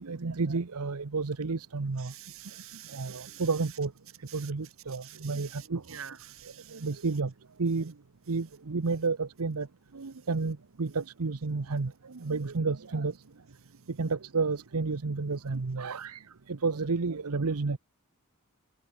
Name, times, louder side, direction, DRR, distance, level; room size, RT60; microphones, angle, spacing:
voice 1, 0.0-2.1 2.9-3.9 4.2-5.8 6.7-7.3 7.6-7.9 8.3-9.7 9.9-13.2 13.9-17.8, right 4 dB, 90° right, 0.9 m, -31 dB
voice 2, 2.0-3.7 4.3-7.1, right 10 dB, 65° right, 3.7 m, -48 dB
open air
head